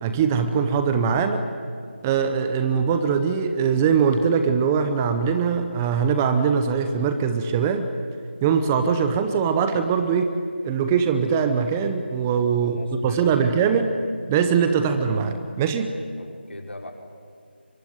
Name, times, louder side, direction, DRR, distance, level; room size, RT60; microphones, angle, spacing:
voice 1, 0.0-1.4 2.0-7.9 8.4-10.3 10.6-13.9 14.3-16.0, right 6 dB, 10° right, 8 dB, 0.7 m, -22 dB
voice 2, 12.6-13.9 16.2-16.9, left 1 dB, 80° left, 2 dB, 5.5 m, -40 dB
25.0 x 24.0 x 9.6 m, 2.1 s
figure-of-eight pair, 170°, 6 cm